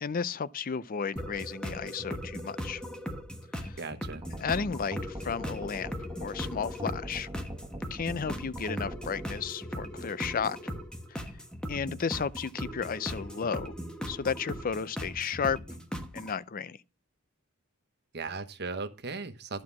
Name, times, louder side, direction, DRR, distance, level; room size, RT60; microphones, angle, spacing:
voice 1, 0.0-2.8 3.6-3.8 4.4-5.9 6.2-7.3 7.9-10.7 11.1-11.2 11.7-13.7 14.1-15.6 16.1-16.8, left 6 dB, 40° left, 0.5 m, -33 dB
sound 1, 1.2-16.3, equal, 5° left, 1.3 m, -39 dB
voice 2, 3.8-4.2 18.1-19.6, right 4 dB, 50° right, 1.1 m, -37 dB
sound 2, 4.2-9.3, right 1 dB, 20° right, 1.3 m, -40 dB
11.5 x 4.7 x 7.2 m
head